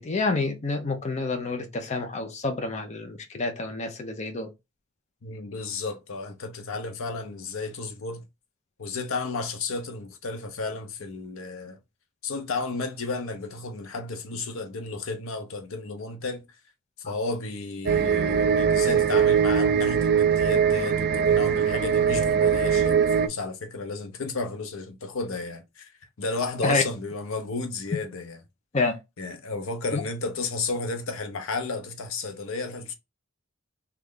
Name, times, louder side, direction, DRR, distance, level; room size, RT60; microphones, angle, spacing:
voice 1, 0.0-4.5 26.6-26.8 28.7-28.9 29.9-30.0, left 3 dB, 35° left, 0.6 m, -28 dB
voice 2, 5.2-8.2 8.8-11.8 12.2-16.4 17.1-25.9 26.2-28.4 29.2-32.9, left 3 dB, 80° left, 0.7 m, -33 dB
sound 1, 17.9-23.3, right 7 dB, 50° right, 0.3 m, -21 dB
3.2 x 2.3 x 3.7 m
head